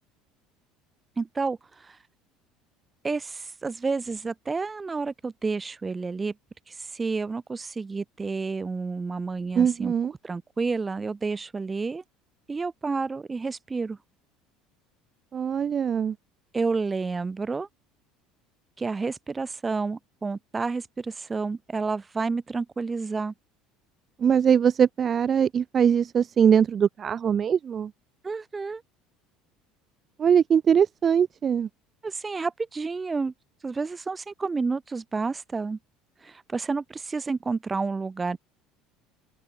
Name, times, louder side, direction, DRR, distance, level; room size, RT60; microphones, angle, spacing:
voice 1, 1.2-2.0 3.0-6.3 6.7-9.9 10.2-12.0 12.5-14.0 16.5-17.7 18.8-23.3 28.2-28.8 32.0-33.3 33.6-35.8 36.2-38.4, right 4 dB, 20° right, 0.8 m, -30 dB
voice 2, 9.6-10.1 15.3-16.1 24.2-27.9 30.2-31.7, right 7 dB, 40° right, 0.3 m, -22 dB
supercardioid pair, 95°, 0 cm